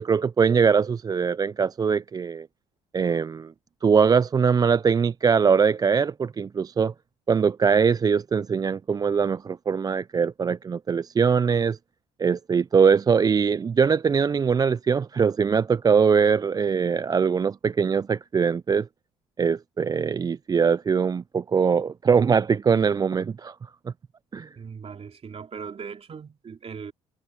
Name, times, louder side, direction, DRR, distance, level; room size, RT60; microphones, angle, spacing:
voice 1, 0.0-2.5 2.9-3.5 3.8-6.9 7.3-11.8 12.2-18.9 19.4-23.5 24.3-24.5, right 6 dB, 25° right, 0.3 m, -22 dB
voice 2, 24.6-26.9, right 6 dB, 40° right, 2.9 m, -39 dB
hypercardioid pair, 60°, 15 cm